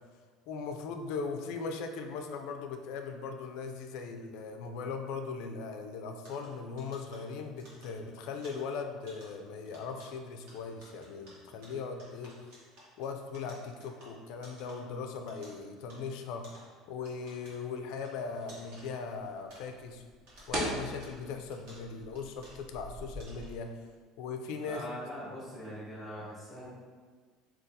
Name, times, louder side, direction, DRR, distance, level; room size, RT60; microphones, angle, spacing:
voice 1, 0.5-12.4 13.0-16.5 16.9-20.0 20.5-23.7 24.2-24.8, left 5 dB, 60° left, 5 dB, 0.3 m, -39 dB
sound 1, 6.2-20.0 20.3-22.9 23.2-23.7, equal, 75° right, 1.1 m, -57 dB
sound 2, 18.2-23.6, right 1 dB, 25° right, 0.7 m, -42 dB
voice 2, 24.6-26.7, equal, ahead, -9 dB, 1.4 m, -42 dB
3.9 x 2.3 x 2.6 m, 1.5 s
cardioid pair, 165°, 0 cm